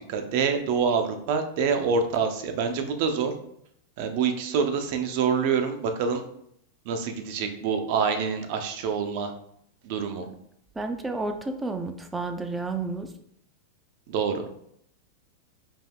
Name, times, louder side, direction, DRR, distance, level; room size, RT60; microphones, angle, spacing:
voice 1, 0.1-3.3 4.0-6.2 6.9-9.3 9.8-10.3 14.1-14.5, right 6 dB, 55° right, 6 dB, 0.6 m, -26 dB
voice 2, 10.8-13.1, right 3 dB, 10° right, 6 dB, 0.4 m, -31 dB
5.2 x 3.6 x 2.3 m, 0.72 s
supercardioid pair, 145°, 0 cm